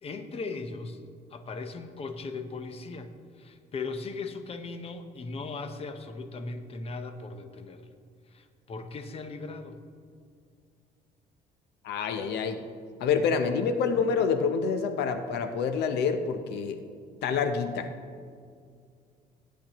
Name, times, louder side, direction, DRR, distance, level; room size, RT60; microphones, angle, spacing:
voice 1, 0.0-1.0 1.3-7.9 8.3-9.8, left 3 dB, 35° left, 8 dB, 0.9 m, -38 dB
voice 2, 11.8-12.6 13.0-16.8 17.2-17.9, left 5 dB, 75° left, 8 dB, 0.7 m, -27 dB
16.0 x 10.0 x 3.0 m, 2.2 s
cardioid pair, 110°, 17 cm